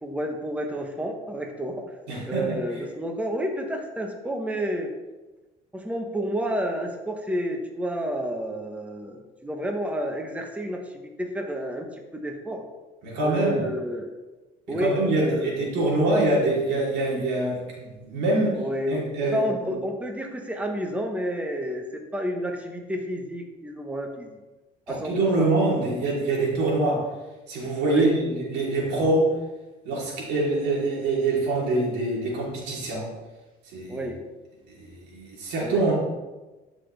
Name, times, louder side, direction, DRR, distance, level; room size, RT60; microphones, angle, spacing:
voice 1, 0.0-1.9 2.3-4.9 5.7-12.6 13.2-14.1 14.7-15.6 18.5-24.4 24.9-25.5 27.8-28.1 33.9-34.2 35.6-35.9, equal, 10° right, 3 dB, 1.2 m, -30 dB
voice 2, 2.1-2.6 13.0-13.7 14.7-18.5 18.9-19.7 24.9-27.1 27.5-29.3 29.8-33.1 33.7-34.1 34.7-35.9, right 2 dB, 90° right, -4 dB, 3.5 m, -25 dB
13.5 x 6.2 x 3.5 m, 1.2 s
cardioid pair, 110°, 17 cm